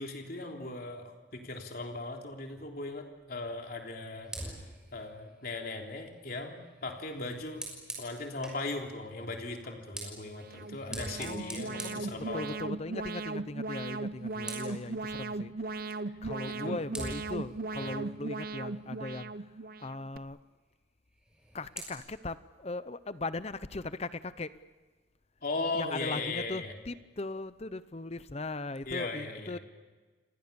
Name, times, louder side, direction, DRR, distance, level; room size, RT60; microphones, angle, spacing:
voice 1, 0.0-4.6 4.9-7.7 8.0-12.4 16.5-16.8 17.8-18.0 25.4-26.7 28.8-29.6, left 2 dB, 50° left, 2 dB, 3.4 m, -38 dB
Fire, 4.2-8.7 9.6-12.8 13.2-13.5 13.8-14.9 16.3-16.4 16.9-19.2 21.1-21.9, right 1 dB, 5° right, 6.0 m, -46 dB
Alarm, 10.3-20.2, right 3 dB, 50° right, 0.8 m, -38 dB
voice 2, 11.2-15.5 16.2-19.3 19.8-20.4 21.5-24.6 25.7-29.6, left 2 dB, 35° left, 14 dB, 0.7 m, -39 dB
29.5 x 25.0 x 7.0 m, 1.3 s
head